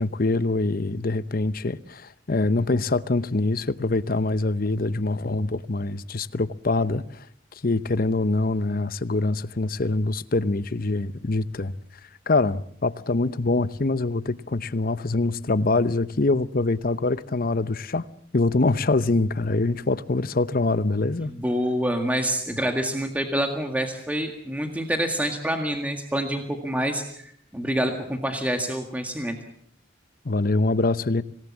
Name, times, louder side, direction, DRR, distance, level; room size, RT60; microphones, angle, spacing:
voice 1, 0.0-7.2 7.6-11.8 12.3-18.0 18.3-21.3 30.2-31.2, left 2 dB, 50° left, 0.8 m, -24 dB
voice 2, 21.2-29.4, equal, 10° right, 1.8 m, -27 dB
26.0 x 18.5 x 7.2 m
head